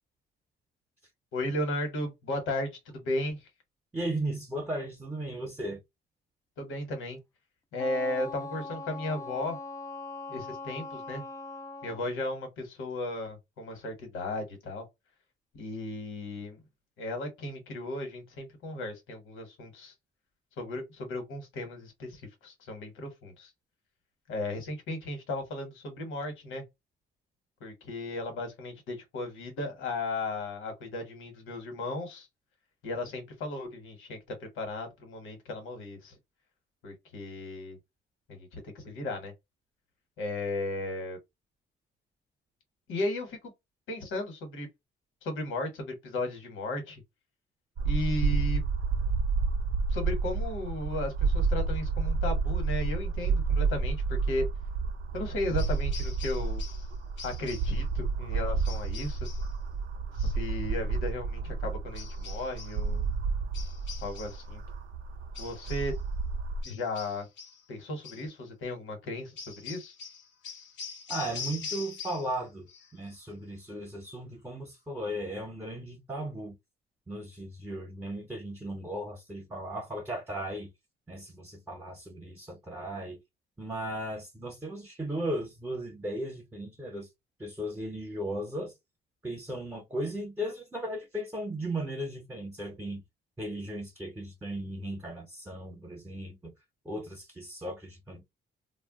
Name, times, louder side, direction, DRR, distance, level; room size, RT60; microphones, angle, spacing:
voice 1, 1.3-3.5 6.6-7.2 7.7-9.6 10.3-11.2 11.8-14.8 15.5-16.6 17.0-19.9 20.6-23.5 24.3-26.6 27.6-32.3 32.8-36.2 36.8-37.8 38.3-39.3 40.2-41.2 42.9-43.5 43.9-44.7 45.2-47.0 47.8-48.6 49.9-54.4 55.1-56.6 57.2-59.3 60.1-63.1 64.0-64.6 65.4-65.9 66.6-67.3 67.7-69.9, left 2 dB, 85° left, 1.2 m, -35 dB
voice 2, 3.9-5.8 71.1-72.7 72.9-76.6 77.1-80.7 81.1-83.2 83.6-87.1 87.4-88.7 89.2-93.0 93.4-96.5 96.8-98.2, right 1 dB, 10° right, 0.8 m, -36 dB
Wind instrument woodwind instrument, 7.8-12.1, left 3 dB, 15° left, 0.4 m, -41 dB
sound 1, 47.8-66.6, right 4 dB, 65° right, 0.5 m, -30 dB
sound 2, 55.6-56.9 57.2-57.8 58.6-59.5 61.9-62.8 63.5-64.5 65.3-66.0 66.6-67.6 68.0-68.3 69.4-72.4 72.7-73.2, left 6 dB, 65° left, 0.7 m, -43 dB
2.3 x 2.1 x 3.6 m
cardioid pair, 90°, 20 cm